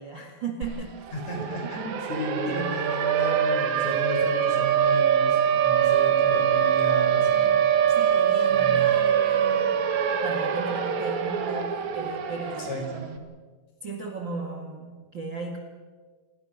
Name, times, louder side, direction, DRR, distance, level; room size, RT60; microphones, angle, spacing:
voice 1, 0.0-1.1 1.6-1.7 2.5-2.7 7.9-9.8 10.2-13.3 13.8-15.6, right 3 dB, 40° right, 3 dB, 2.0 m, -36 dB
Siren, 0.6-0.7 1.0-13.1, right 8 dB, 55° right, 2.6 m, -23 dB
voice 2, 1.1-7.6 8.5-8.9 12.6-13.0, equal, 45° left, 2 dB, 5.6 m, -34 dB
29.5 x 20.0 x 6.4 m, 1.4 s
omnidirectional pair, 4.5 m